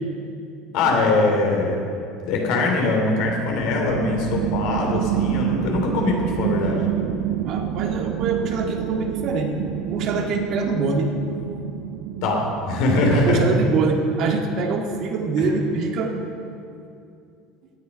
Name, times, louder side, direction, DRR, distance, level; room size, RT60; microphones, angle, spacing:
voice 1, 0.7-1.8 2.2-6.8 12.2-13.4 15.4-15.5, left 2 dB, 70° left, 1 dB, 3.0 m, -22 dB
sound 1, 3.2-15.3, right 10 dB, 75° right, 0.6 m, -29 dB
voice 2, 7.5-11.1 13.1-16.1, right 4 dB, 55° right, 3 dB, 1.8 m, -24 dB
15.5 x 9.5 x 5.3 m, 2.6 s
supercardioid pair, 90°, 0 cm